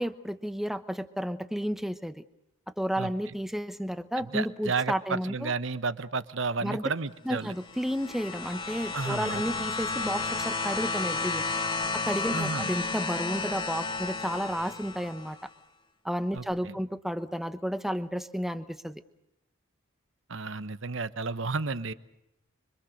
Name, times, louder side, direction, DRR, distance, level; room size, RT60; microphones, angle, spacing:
voice 1, 0.0-2.2 2.8-5.5 6.6-6.9 7.2-11.5 11.9-15.4 16.0-19.0, equal, ahead, 11 dB, 0.9 m, -32 dB
voice 2, 4.2-7.5 8.9-9.4 12.3-12.7 16.3-16.7 20.3-21.9, right 4 dB, 65° right, 13 dB, 1.1 m, -32 dB
sound 1, 7.5-15.3 16.4-16.5, left 3 dB, 25° left, 2.2 m, -32 dB
25.5 x 25.0 x 6.5 m, 0.84 s
head